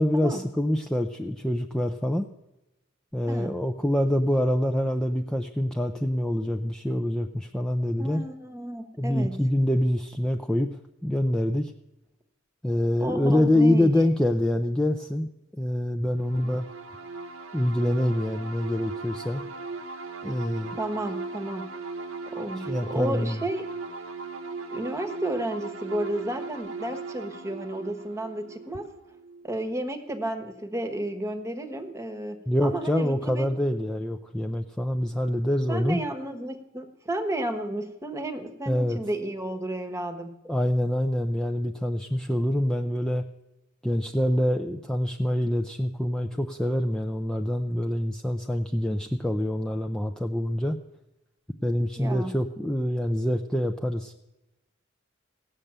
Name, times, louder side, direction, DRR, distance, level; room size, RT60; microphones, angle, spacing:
voice 1, 0.0-2.3 3.1-8.2 9.0-11.7 12.6-16.7 17.5-19.4 20.2-20.8 22.6-23.4 32.5-36.0 38.7-39.0 40.4-43.2 43.8-50.8 51.6-54.1, left 1 dB, 5° left, 3 dB, 0.5 m, -25 dB
voice 2, 8.0-9.4 13.0-14.1 20.8-21.7 22.3-23.6 24.7-28.9 29.4-33.5 35.7-40.3 52.0-52.3, right 1 dB, 15° right, 5 dB, 1.2 m, -32 dB
sound 1, 16.2-29.7, right 4 dB, 75° right, 1.1 m, -38 dB
16.5 x 6.7 x 8.8 m, 0.94 s
head